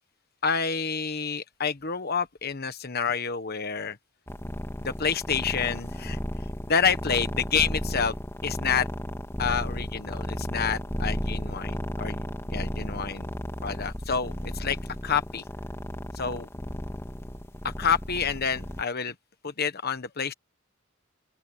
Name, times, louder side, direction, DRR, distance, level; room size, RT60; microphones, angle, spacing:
voice 1, 0.4-4.0 4.8-6.2 6.7-8.1 8.4-8.9 9.4-12.2 12.5-13.3 13.6-14.8 15.0-15.4 16.2-16.5 17.6-19.1 19.4-20.3, left 6 dB, 50° left, 1.2 m, -28 dB
sound 1, 4.3-18.8, equal, 10° left, 2.1 m, -34 dB
open air
head